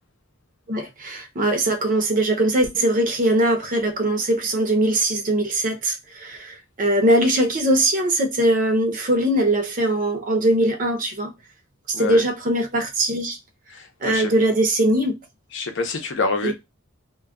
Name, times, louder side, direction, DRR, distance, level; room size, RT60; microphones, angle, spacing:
voice 1, 0.7-11.3 12.0-13.4 14.0-15.2 16.4-16.5, right 1 dB, 40° right, 0.6 m, -21 dB
voice 2, 11.9-12.2 13.7-14.3 15.5-16.5, left 3 dB, 60° left, 0.6 m, -26 dB
2.2 x 2.2 x 3.5 m
head